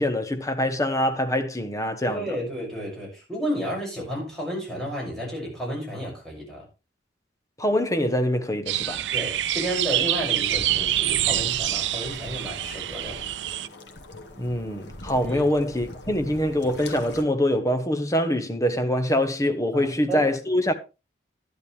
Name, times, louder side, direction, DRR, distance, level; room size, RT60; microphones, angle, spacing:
voice 1, 0.0-2.2 7.6-9.0 14.4-20.8, left 1 dB, 20° left, 1.1 m, -24 dB
voice 2, 2.1-6.6 9.1-13.2 15.2-15.4 19.7-20.3, equal, ahead, 6.5 m, -32 dB
sound 1, 8.7-13.7, right 13 dB, 80° right, 0.5 m, -26 dB
sound 2, 10.4-17.2, left 1 dB, 75° left, 1.8 m, -42 dB
11.5 x 10.5 x 3.4 m
head